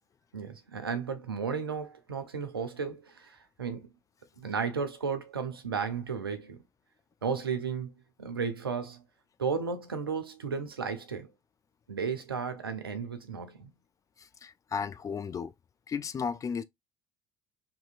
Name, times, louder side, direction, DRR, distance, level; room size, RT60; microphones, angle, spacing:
voice 1, 0.3-3.9 4.4-6.6 7.2-7.9 8.2-9.0 9.4-11.3 11.9-13.7, right 5 dB, 90° right, 0.5 m, -34 dB
voice 2, 14.2-15.5 15.9-16.6, left 6 dB, 30° left, 0.3 m, -34 dB
2.7 x 2.6 x 2.3 m
figure-of-eight pair, 55°, 12 cm